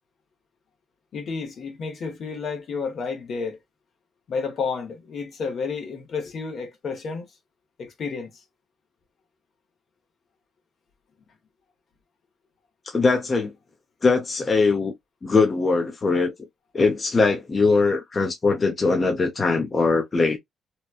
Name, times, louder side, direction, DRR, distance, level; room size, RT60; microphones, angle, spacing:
voice 1, 1.1-3.6 4.3-7.3 7.8-8.3, left 5 dB, 65° left, 0.9 m, -31 dB
voice 2, 12.9-13.5 14.0-14.9 15.2-16.3 16.7-20.4, left 4 dB, 35° left, 0.6 m, -21 dB
2.9 x 2.2 x 2.3 m
supercardioid pair, 70°, 0 cm